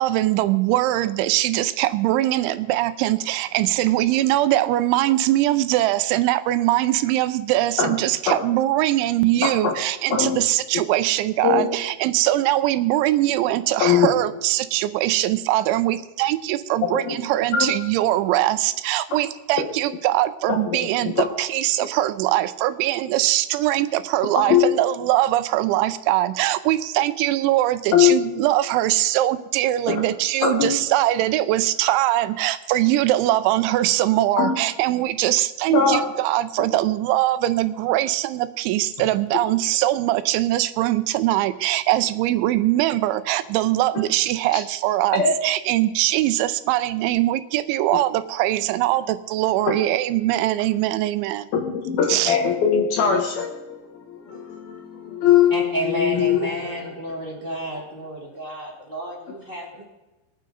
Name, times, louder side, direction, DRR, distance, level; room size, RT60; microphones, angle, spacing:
voice 1, 0.0-51.5 52.1-52.4, right 15 dB, 85° right, 13 dB, 3.0 m, -22 dB
voice 2, 16.8-17.1 17.5-17.7 20.5-21.2 24.5-24.8 27.9-28.2 29.9-30.0 30.4-30.8 34.4-34.5 35.7-36.0 45.2-45.3 49.7-49.8 51.5-56.9, left 8 dB, 65° left, 2 dB, 2.7 m, -21 dB
voice 3, 55.5-59.8, right 1 dB, 25° right, -3 dB, 1.2 m, -31 dB
21.5 x 9.2 x 3.9 m, 1.0 s
omnidirectional pair, 5.3 m